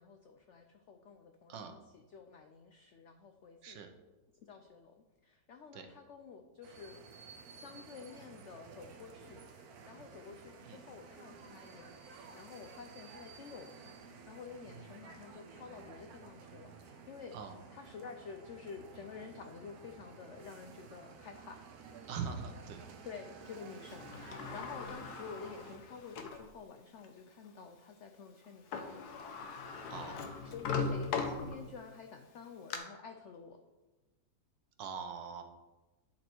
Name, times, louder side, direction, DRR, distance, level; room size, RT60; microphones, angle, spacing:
voice 1, 0.0-1.8 2.1-3.8 4.4-7.2 7.5-17.4 17.7-21.6 23.0-33.6, left 5 dB, 85° left, 5 dB, 0.6 m, -50 dB
voice 2, 1.5-1.8 3.6-3.9 5.7-5.9 10.6-10.8 14.7-14.9 17.3-17.6 22.1-22.9 29.9-30.2 34.8-35.4, right 6 dB, 85° right, 6 dB, 1.5 m, -42 dB
sound 1, 6.6-25.8, right 5 dB, 65° right, 1.1 m, -54 dB
Sliding door, 23.8-26.5 27.0-27.1 28.4-28.5 28.7-31.9 32.4-32.8, left 5 dB, 65° left, 1.3 m, -39 dB
10.5 x 4.2 x 4.5 m, 1.1 s
omnidirectional pair, 1.9 m